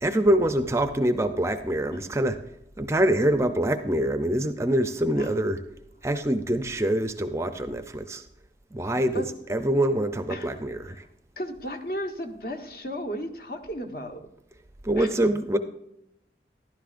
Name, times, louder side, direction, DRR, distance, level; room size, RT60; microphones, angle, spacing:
voice 1, 0.0-2.4 2.8-5.6 6.0-8.2 8.7-11.0 14.8-15.6, right 1 dB, 15° right, 9 dB, 0.5 m, -25 dB
voice 2, 8.9-9.3 10.3-10.6 10.9-11.1 11.4-14.3 15.0-15.2, equal, 55° left, 5 dB, 1.2 m, -35 dB
14.0 x 12.0 x 2.5 m, 0.82 s
head